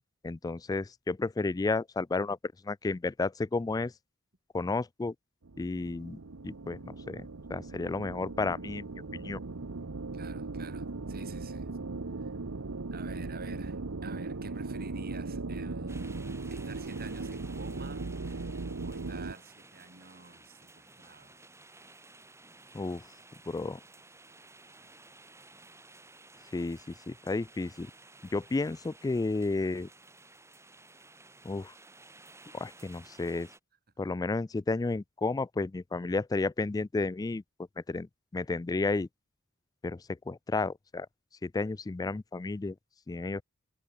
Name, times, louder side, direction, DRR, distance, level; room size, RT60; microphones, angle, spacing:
voice 1, 0.2-2.4 2.6-3.9 4.5-5.1 5.6-6.2 6.4-7.3 7.5-8.9 9.1-9.4 22.7-23.0 23.5-23.8 26.5-26.8 27.1-27.9 28.3-29.9 31.4-31.7 32.5-33.5 34.0-37.4 37.9-38.1 38.3-39.1 39.8-40.0 40.3-41.1 41.4-42.7 43.1-43.4, left 3 dB, 15° left, 0.3 m, -32 dB
sound 1, 5.4-19.3, right 3 dB, 80° right, 0.9 m, -38 dB
voice 2, 10.1-11.8 12.2-12.3 12.9-21.5 22.9-23.0 23.7-23.8 24.4-24.9, right 3 dB, 45° right, 3.7 m, -49 dB
sound 2, 15.9-33.6, right 2 dB, 15° right, 5.2 m, -55 dB
head